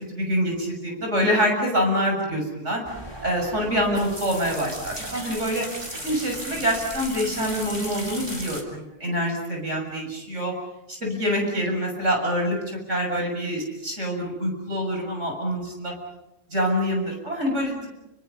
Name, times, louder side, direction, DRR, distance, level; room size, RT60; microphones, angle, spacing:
voice 1, 0.1-2.8 3.2-5.6 6.0-10.5 11.0-15.9 16.5-17.9, equal, 85° right, 1 dB, 7.3 m, -25 dB
sound 1, 2.8-8.6, equal, 20° right, 3.6 m, -36 dB
29.0 x 27.0 x 5.5 m, 0.90 s
omnidirectional pair, 1.2 m